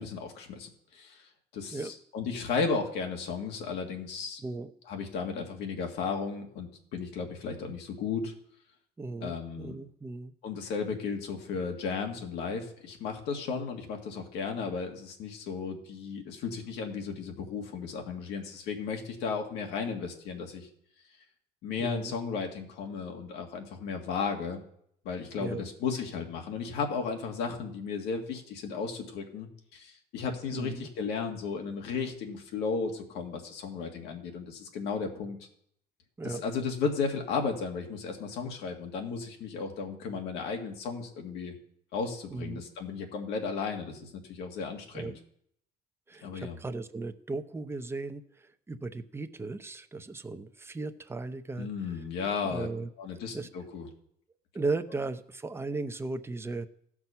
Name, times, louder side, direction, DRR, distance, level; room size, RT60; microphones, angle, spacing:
voice 1, 0.0-4.4 4.9-8.3 9.2-9.8 10.4-20.7 21.6-24.6 25.1-35.4 36.2-41.5 41.9-45.1 46.2-46.6 51.6-52.7 53.0-53.9, left 5 dB, 85° left, 3 dB, 1.9 m, -34 dB
voice 2, 4.4-4.7 9.0-10.3 21.8-22.1 25.4-25.6 30.5-30.9 36.2-36.4 42.3-42.6 44.9-45.2 46.1-52.0 52.4-52.9 53.3-53.5 54.5-56.7, right 3 dB, 15° right, 9 dB, 0.7 m, -36 dB
15.0 x 6.1 x 5.6 m, 0.69 s
cardioid pair, 110°, 17 cm